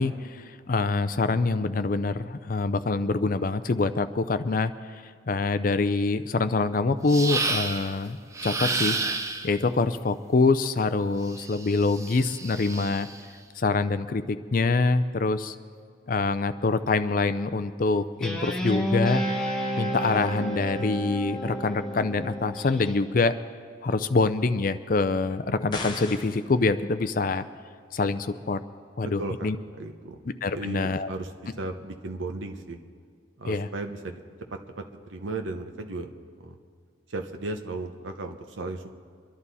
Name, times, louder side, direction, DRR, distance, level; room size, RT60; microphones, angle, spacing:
voice 1, 0.0-4.7 5.3-8.2 8.4-9.0 9.4-13.1 13.6-15.6 16.1-19.2 19.8-23.4 23.8-27.4 27.9-28.6 29.0-29.6 30.4-31.1 33.5-33.7, left 3 dB, 45° left, 11 dB, 0.5 m, -25 dB
sound 1, 7.1-7.9 8.3-9.6 11.3-13.2, right 3 dB, 15° right, 0.5 m, -30 dB
Guitar, 18.2-23.0, equal, 5° left, 1.3 m, -30 dB
sound 2, 25.7-26.4, left 2 dB, 20° left, 1.2 m, -35 dB
voice 2, 29.0-30.2 30.5-32.8 33.4-34.2 34.8-34.9 35.1-36.1 36.4-36.6 37.1-38.9, right 2 dB, 80° right, 5 dB, 1.0 m, -35 dB
23.5 x 11.5 x 4.2 m, 2.2 s
head